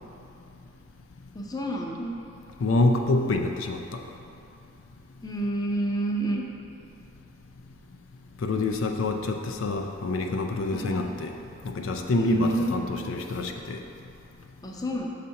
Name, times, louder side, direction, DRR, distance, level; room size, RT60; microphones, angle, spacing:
voice 1, 1.3-2.2 5.2-6.4 10.7-11.0 12.2-12.7 14.6-15.1, right 1 dB, 20° left, 0 dB, 0.6 m, -28 dB
voice 2, 2.6-4.0 8.4-11.3 11.6-13.8, left 2 dB, 70° left, 4 dB, 0.5 m, -26 dB
6.2 x 4.2 x 5.7 m, 2.7 s
head